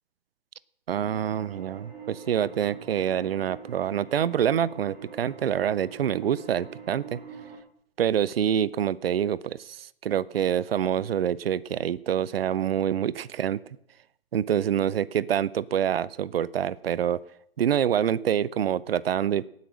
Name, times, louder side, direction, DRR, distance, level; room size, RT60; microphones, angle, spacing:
voice 1, 0.9-7.2 8.0-13.6 14.3-17.2 17.6-19.5, right 9 dB, 75° right, 20 dB, 0.7 m, -26 dB
sound 1, 1.0-7.6, right 6 dB, 50° right, 6.0 m, -44 dB
18.0 x 8.3 x 6.3 m, 0.71 s
hypercardioid pair, 135°, 30 cm